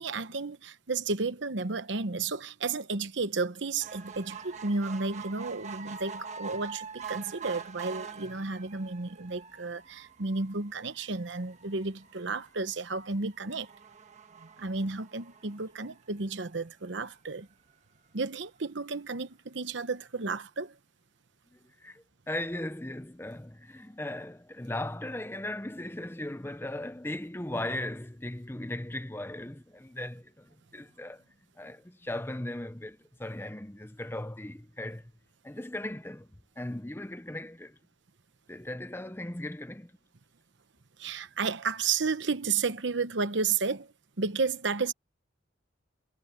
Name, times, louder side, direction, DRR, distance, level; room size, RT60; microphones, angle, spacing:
voice 1, 0.0-13.7 14.4-17.5 18.1-20.8 41.0-44.9, right 4 dB, 70° right, 1.0 m, -32 dB
sound 1, 3.8-16.4 17.0-17.1 17.4-17.5 17.7-17.8, right 6 dB, 35° right, 1.7 m, -45 dB
voice 2, 21.5-31.2 31.6-35.1 35.4-36.3 36.6-37.8 38.5-39.9, left 1 dB, 10° left, 0.7 m, -38 dB
head